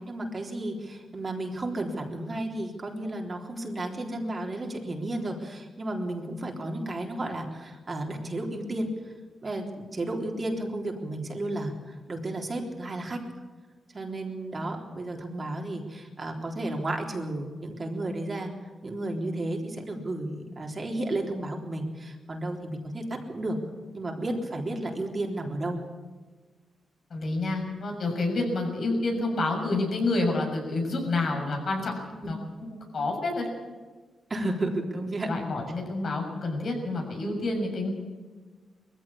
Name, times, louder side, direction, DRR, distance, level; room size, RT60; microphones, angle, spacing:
voice 1, 0.0-8.9 9.4-13.2 13.9-18.5 18.8-23.6 23.9-25.8 32.2-32.3 34.3-35.3, right 1 dB, 35° right, 1 dB, 3.7 m, -33 dB
voice 2, 27.1-31.9 32.2-33.5 35.3-37.9, left 2 dB, 60° left, 1 dB, 6.7 m, -28 dB
20.5 x 15.0 x 8.6 m, 1.4 s
cardioid pair, 75°, 0 cm